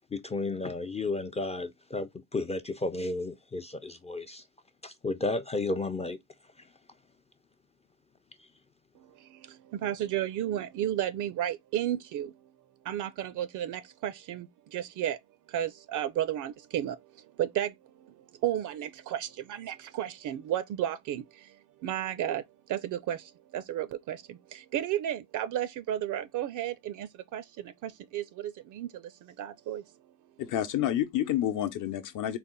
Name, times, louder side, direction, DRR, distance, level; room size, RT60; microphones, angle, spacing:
voice 1, 0.1-4.4 4.8-6.2, left 2 dB, 15° left, 0.4 m, -33 dB
voice 2, 9.0-12.3 12.8-15.2 15.5-29.9, right 11 dB, 50° right, 0.5 m, -33 dB
voice 3, 30.4-32.4, left 11 dB, 55° left, 0.8 m, -29 dB
4.2 x 2.0 x 3.7 m
supercardioid pair, 80°, 39 cm